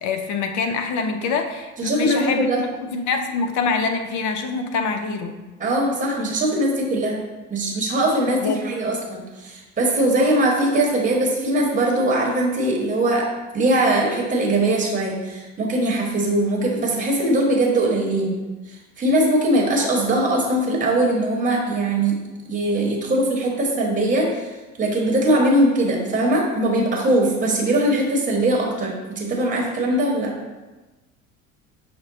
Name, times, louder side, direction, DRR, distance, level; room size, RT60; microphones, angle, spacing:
voice 1, 0.0-5.4 8.4-8.6, left 4 dB, 50° left, 6 dB, 0.6 m, -25 dB
voice 2, 1.8-2.6 5.6-7.2 7.5-13.3 13.5-18.3 18.7-22.2 22.5-30.3, right 1 dB, 20° right, -1 dB, 1.1 m, -21 dB
5.8 x 2.1 x 3.8 m, 1.2 s
hypercardioid pair, 75°, 39 cm